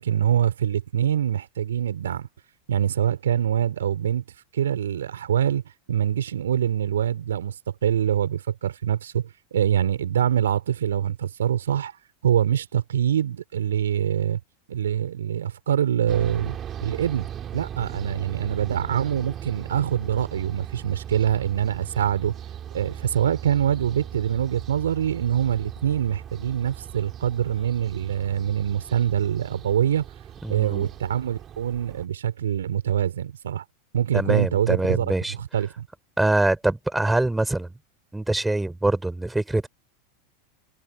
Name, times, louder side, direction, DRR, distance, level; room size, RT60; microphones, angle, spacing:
voice 1, 0.0-2.3 2.7-4.2 4.5-5.6 5.9-7.5 7.8-11.9 12.2-14.4 14.7-17.3 17.5-22.3 22.7-30.0 30.5-33.6 33.9-35.9, right 9 dB, 70° right, 4.7 m, -24 dB
sound 1, 16.1-32.1, right 10 dB, 30° right, 3.8 m, -38 dB
voice 2, 30.4-30.9 34.1-35.3 36.2-37.7 38.1-39.7, right 2 dB, 5° right, 4.7 m, -24 dB
figure-of-eight pair, 85°, 0 cm